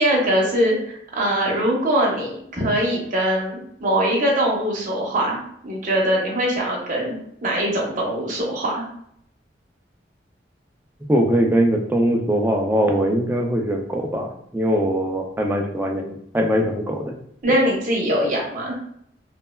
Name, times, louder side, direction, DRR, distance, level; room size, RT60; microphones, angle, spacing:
voice 1, 0.0-7.1 7.4-8.8 17.4-18.8, right 1 dB, 45° right, -2 dB, 0.8 m, -22 dB
voice 2, 11.1-17.1, equal, 10° right, 2 dB, 0.3 m, -21 dB
3.1 x 2.1 x 2.2 m, 0.70 s
head